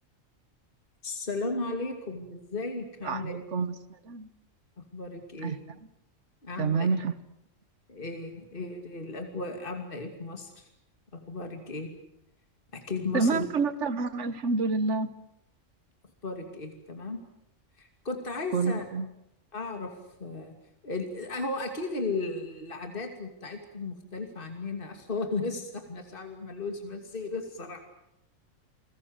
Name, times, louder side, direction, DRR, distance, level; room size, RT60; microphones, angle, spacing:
voice 1, 1.0-3.4 4.8-5.6 6.4-6.9 7.9-10.7 11.1-11.9 12.7-13.5 16.2-17.2 17.8-18.8 19.5-19.9 20.2-20.5 20.8-27.9, left 3 dB, 40° left, 5 dB, 2.8 m, -35 dB
voice 2, 3.0-3.7 4.0-4.3 5.4-5.6 6.6-7.1 13.1-15.1 18.5-19.1, right 4 dB, 65° right, 14 dB, 1.6 m, -28 dB
30.0 x 20.5 x 8.1 m, 0.82 s
omnidirectional pair, 1.4 m